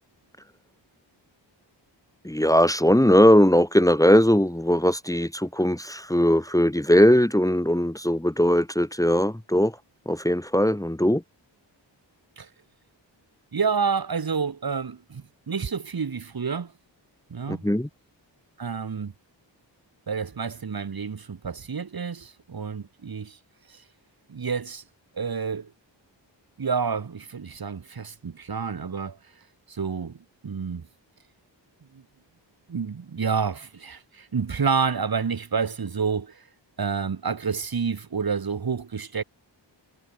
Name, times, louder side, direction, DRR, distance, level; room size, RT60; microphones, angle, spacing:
voice 1, 2.2-9.7 10.0-11.2 17.5-17.9, equal, 5° left, 1.5 m, -20 dB
voice 2, 13.5-16.7 17.3-17.7 18.6-19.1 20.1-23.4 23.7-23.8 24.3-24.8 25.1-25.7 26.6-29.2 29.7-30.9 31.9-32.0 32.7-36.5 36.8-39.2, right 5 dB, 50° right, 1.5 m, -29 dB
cardioid pair, 60°, 45 cm